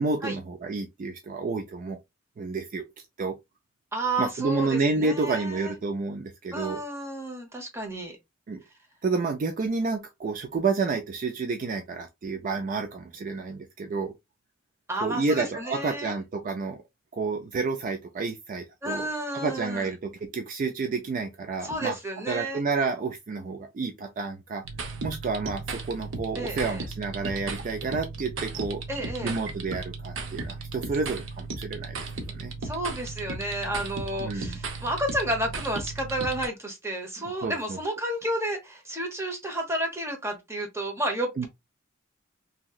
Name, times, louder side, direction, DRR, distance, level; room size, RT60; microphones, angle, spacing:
voice 1, 0.0-2.0 2.4-2.9 3.2-3.4 4.2-6.8 8.5-8.6 9.0-14.1 15.0-16.8 17.1-19.1 19.3-22.0 22.3-24.6 25.0-28.8 29.2-32.0 32.2-32.5 34.2-34.6 37.4-37.8 41.4-41.5, right 4 dB, 40° right, 0.3 m, -30 dB
voice 2, 3.9-5.7 6.5-8.2 14.9-16.1 18.8-19.9 21.6-22.6 26.3-26.8 28.9-29.4 32.6-41.5, right 1 dB, 15° right, 0.9 m, -31 dB
sound 1, 24.6-36.5, right 3 dB, 70° right, 0.7 m, -36 dB
2.9 x 2.8 x 2.3 m
head